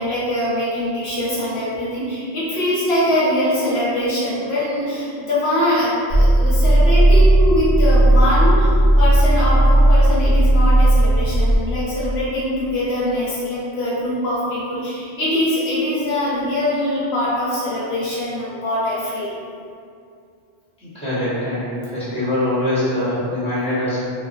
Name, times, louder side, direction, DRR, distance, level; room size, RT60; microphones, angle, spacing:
voice 1, 0.0-8.7 9.0-19.4, left 1 dB, 75° left, -8 dB, 0.9 m, -22 dB
sound 1, 6.1-11.6, right 1 dB, 65° right, 1.0 m, -14 dB
voice 2, 20.8-24.0, left 1 dB, 5° left, -13 dB, 1.1 m, -23 dB
2.8 x 2.3 x 2.5 m, 2.4 s
omnidirectional pair, 1.1 m